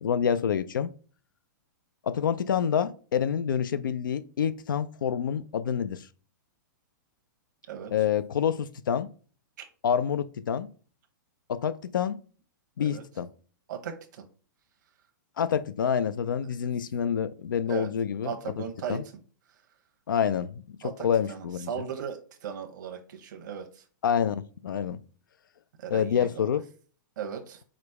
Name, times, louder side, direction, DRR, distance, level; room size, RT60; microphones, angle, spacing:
voice 1, 0.0-0.9 2.0-6.1 7.9-9.1 9.8-10.7 11.5-12.2 12.8-13.3 15.4-18.3 18.6-18.7 18.9-19.0 20.1-21.7 24.0-25.0 25.9-26.6, left 8 dB, 85° left, 0.4 m, -27 dB
voice 2, 13.7-14.2 17.7-17.9 18.2-19.0 20.8-23.8 25.8-26.4 27.2-27.6, right 8 dB, 65° right, 0.9 m, -37 dB
4.9 x 2.1 x 4.6 m
hypercardioid pair, 130°, 11 cm